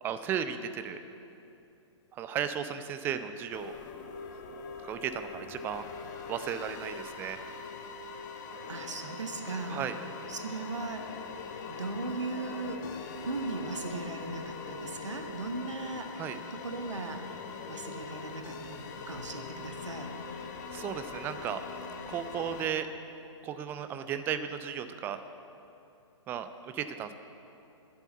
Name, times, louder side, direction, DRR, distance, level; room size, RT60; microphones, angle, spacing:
voice 1, 0.0-1.0 2.1-3.7 4.8-5.9 6.3-7.5 9.7-10.0 16.1-16.4 20.7-21.6 22.1-22.9 23.4-25.2 26.3-27.1, right 8 dB, 15° right, 10 dB, 0.4 m, -35 dB
sound 1, 3.5-22.7, left 4 dB, 35° left, 0.9 m, -42 dB
voice 2, 8.7-9.9 10.3-11.0 11.7-12.8 13.2-16.1 16.5-17.2 17.7-20.1, right 3 dB, 70° right, 5 dB, 1.2 m, -38 dB
10.5 x 7.9 x 8.1 m, 2.8 s
figure-of-eight pair, 120°, 16 cm